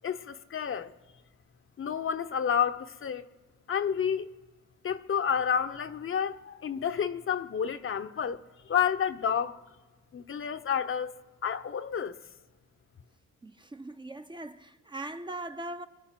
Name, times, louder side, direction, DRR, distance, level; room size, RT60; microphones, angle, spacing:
voice 1, 0.0-0.9 1.8-3.3 3.7-4.3 4.8-8.4 8.7-9.6 10.1-12.2, left 8 dB, 45° left, 0.8 m, -30 dB
voice 2, 13.4-15.9, right 2 dB, 15° right, 0.6 m, -40 dB
24.5 x 8.5 x 5.9 m
cardioid pair, 90°, 30 cm